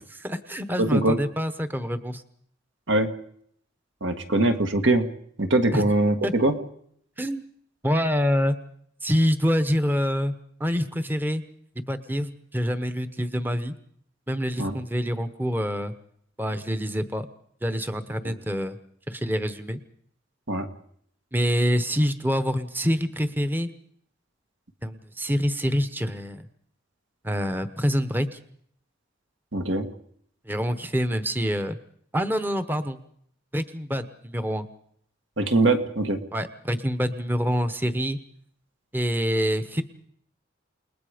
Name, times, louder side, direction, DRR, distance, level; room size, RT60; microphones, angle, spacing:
voice 1, 0.2-2.2 5.7-5.9 6.2-6.3 7.2-7.4 7.8-8.6 9.0-10.3 10.6-11.4 11.9-13.7 14.3-15.9 16.4-17.3 17.6-18.8 19.1-19.8 21.3-23.7 24.8-26.5 27.2-28.4 30.5-31.8 32.1-33.0 33.5-34.7 36.3-38.2 38.9-39.8, equal, 10° right, 10 dB, 1.0 m, -26 dB
voice 2, 0.8-1.2 2.9-3.1 4.0-5.1 5.4-6.5 14.6-14.8 18.2-18.3 20.5-20.7 29.5-29.9 35.4-36.2, right 2 dB, 65° right, 6 dB, 1.8 m, -22 dB
29.0 x 20.0 x 5.1 m, 0.66 s
head